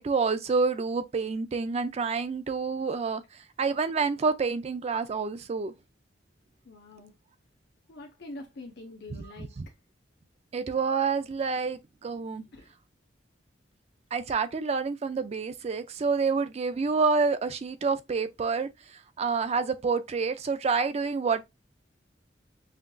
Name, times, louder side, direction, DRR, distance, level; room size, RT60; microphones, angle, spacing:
voice 1, 0.0-3.2 3.6-5.7 9.1-9.7 10.5-12.4 14.1-21.4, right 4 dB, 35° right, 0.4 m, -28 dB
voice 2, 6.6-7.2 7.9-9.8 12.5-12.7, left 2 dB, 65° left, 0.8 m, -45 dB
5.6 x 2.5 x 2.2 m
head